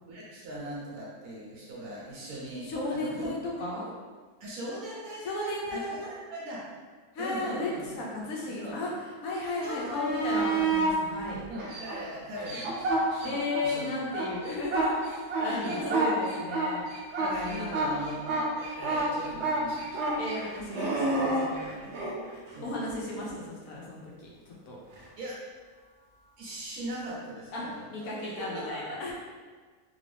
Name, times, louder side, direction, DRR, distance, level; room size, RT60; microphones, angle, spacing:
voice 1, 0.1-3.3 4.4-6.7 7.2-7.9 8.1-8.8 9.6-10.0 11.5-13.9 15.4-16.0 17.2-20.2 21.8-22.0 22.5-22.7 25.2-25.4 26.4-29.0, right 1 dB, 80° right, -5 dB, 1.5 m, -40 dB
voice 2, 2.6-3.9 5.2-6.1 7.1-11.4 13.2-16.9 17.2-17.7 20.2-21.7 22.6-24.8 27.5-29.1, left 2 dB, 70° left, -3 dB, 1.2 m, -35 dB
sound 1, 9.7-11.0 11.6-13.6 14.0-22.2 24.9-25.0, right 3 dB, 60° right, 0.8 m, -29 dB
3.4 x 2.6 x 3.3 m, 1.5 s
omnidirectional pair, 1.6 m